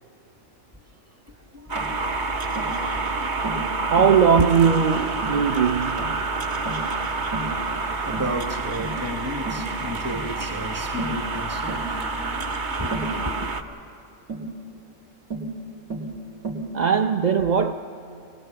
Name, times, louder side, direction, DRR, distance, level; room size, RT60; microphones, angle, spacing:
voice 1, 1.5-3.8 4.4-4.5 7.4-13.6, equal, 15° right, 0.8 m, -34 dB
sound 1, 1.7-13.6, right 3 dB, 40° right, 1.0 m, -28 dB
Tap, 1.7-1.9 2.6-2.8 3.4-3.7 4.0-4.2 4.6-4.8 5.2-5.4 6.0-6.2 6.6-6.9 7.3-7.6 8.1-8.4 8.8-9.0 9.5-9.7 10.1-10.3 11.0-11.2 11.7-11.9 12.9-13.2 14.3-14.5 15.3-15.5 15.9-16.1 16.4-16.7, right 3 dB, 85° right, 2.8 m, -32 dB
voice 2, 3.9-6.2 16.7-17.7, right 6 dB, 55° right, 0.5 m, -20 dB
24.5 x 20.0 x 6.9 m
omnidirectional pair, 1.4 m